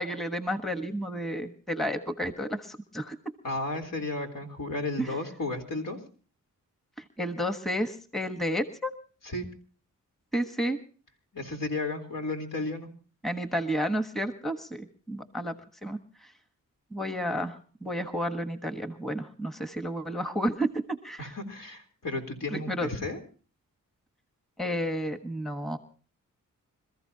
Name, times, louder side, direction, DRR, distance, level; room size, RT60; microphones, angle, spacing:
voice 1, 0.0-3.2 7.2-8.9 10.3-10.8 13.2-15.5 15.8-16.0 16.9-21.3 22.5-22.9 24.6-25.8, equal, ahead, 8 dB, 1.3 m, -31 dB
voice 2, 3.4-6.0 9.2-9.5 11.3-12.9 21.2-23.2, left 2 dB, 70° left, 3 dB, 3.8 m, -33 dB
26.5 x 14.5 x 2.9 m, 0.40 s
cardioid pair, 70°, 34 cm